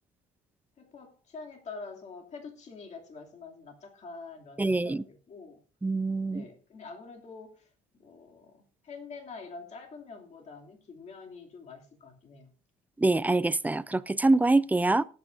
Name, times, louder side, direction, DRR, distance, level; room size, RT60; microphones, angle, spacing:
voice 1, 0.8-5.6 6.3-7.7 8.0-12.5, left 4 dB, 45° left, 2.7 m, -46 dB
voice 2, 4.6-5.0 5.8-6.4 13.0-15.0, right 2 dB, 10° right, 0.4 m, -25 dB
19.0 x 8.9 x 2.6 m
cardioid pair, 110°, 17 cm